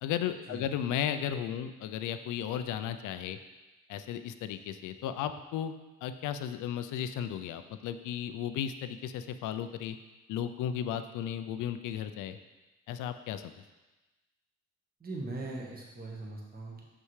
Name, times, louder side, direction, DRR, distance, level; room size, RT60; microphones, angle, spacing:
voice 1, 0.0-3.4 3.9-5.7 6.0-10.0 10.3-12.4 12.9-13.5, left 9 dB, 85° left, 10 dB, 0.5 m, -35 dB
voice 2, 15.0-16.8, right 2 dB, 30° right, -2 dB, 1.3 m, -40 dB
6.1 x 5.5 x 3.2 m, 1.1 s
cardioid pair, 90°, 30 cm